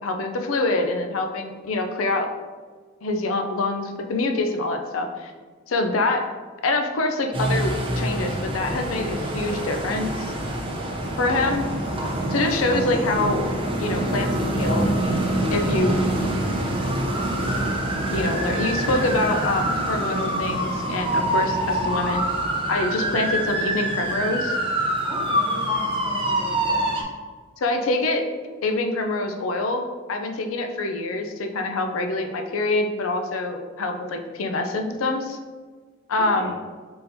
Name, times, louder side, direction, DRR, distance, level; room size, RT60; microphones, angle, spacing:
voice 1, 0.0-2.3 3.0-5.3 5.7-6.3 6.6-10.3 11.2-11.7 12.3-13.5 13.8-14.9 15.5-16.0 18.1-22.2 22.7-24.6 27.6-28.3 28.6-35.4 36.1-36.5, left 2 dB, 85° left, 5 dB, 0.5 m, -25 dB
sound 1, 7.3-27.0, right 1 dB, 25° right, 0.6 m, -25 dB
voice 2, 25.0-26.8 36.2-36.5, equal, 20° left, -9 dB, 1.2 m, -37 dB
4.2 x 3.7 x 2.7 m, 1.5 s
head